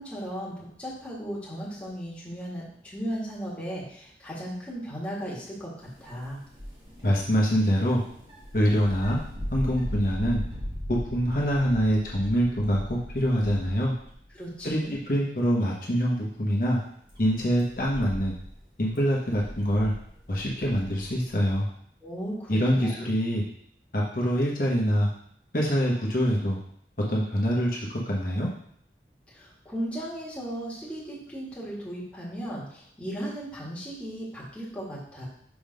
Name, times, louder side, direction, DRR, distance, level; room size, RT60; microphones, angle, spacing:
voice 1, 0.0-6.4 14.3-14.9 22.0-22.9 29.3-35.3, equal, 5° left, -7 dB, 1.7 m, -36 dB
sound 1, 5.8-14.3 14.6-15.1 15.6-15.7 16.6-21.5, equal, 30° right, 1.6 m, -39 dB
voice 2, 7.0-8.0 8.5-9.2 9.5-10.4 10.9-13.9 14.6-16.8 17.2-18.3 18.8-19.9 20.3-21.7 22.5-23.4 23.9-25.1 25.5-26.6 27.1-28.5, equal, 50° left, -4 dB, 1.1 m, -25 dB
6.1 x 3.7 x 5.1 m, 0.67 s
head